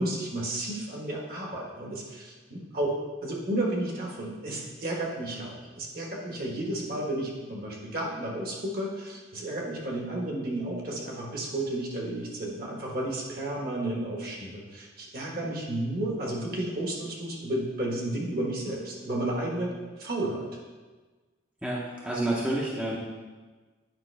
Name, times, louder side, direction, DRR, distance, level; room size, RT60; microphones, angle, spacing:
voice 1, 0.0-19.7 20.0-20.5, right 1 dB, 50° right, -2 dB, 1.4 m, -32 dB
voice 2, 21.6-23.0, right 1 dB, 5° right, -4 dB, 0.7 m, -29 dB
9.1 x 5.1 x 3.3 m, 1.3 s
head